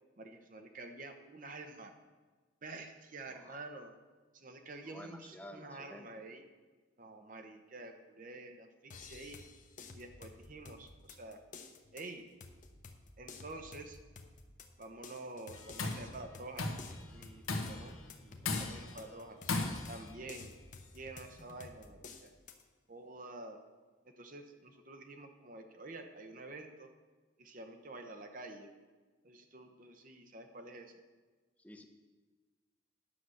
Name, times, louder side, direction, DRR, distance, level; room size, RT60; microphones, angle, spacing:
voice 1, 0.2-1.9 2.6-3.9 4.3-6.4 7.0-9.4 9.9-11.4 11.9-12.3 13.2-14.0 14.8-16.7 17.1-17.9 18.2-19.4 19.9-20.5 20.9-22.3 22.9-23.6 24.2-26.9 27.4-28.7 29.2-30.9, right 2 dB, 40° right, 5 dB, 0.8 m, -48 dB
voice 2, 4.9-6.1 31.6-31.8, left 1 dB, 5° left, 5 dB, 0.7 m, -51 dB
sound 1, 8.9-22.6, left 3 dB, 40° left, 0.8 m, -53 dB
Tools, 15.5-16.1 16.6-16.9 17.5-17.9 18.4-19.0 19.5-20.0, left 3 dB, 90° left, 1.2 m, -36 dB
10.0 x 6.8 x 6.4 m, 1.4 s
head